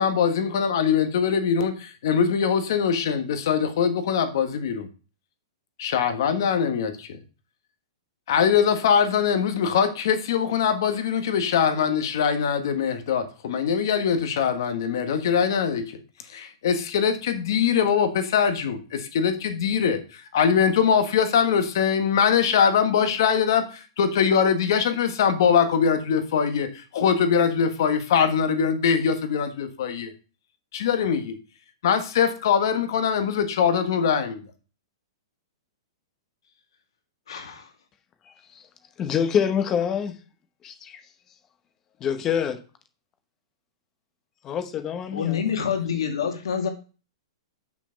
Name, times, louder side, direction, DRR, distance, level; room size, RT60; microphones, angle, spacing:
voice 1, 0.0-4.9 5.8-7.2 8.3-15.9 16.3-30.1 30.7-31.4 31.8-34.4, left 7 dB, 50° left, 1.5 m, -22 dB
voice 2, 37.3-37.7 45.1-46.7, left 7 dB, 85° left, 2.3 m, -27 dB
voice 3, 39.0-40.1 40.6-41.0 42.0-42.6 44.4-45.5, left 8 dB, 15° left, 0.9 m, -26 dB
6.7 x 6.1 x 5.1 m
hypercardioid pair, 175°, 3 cm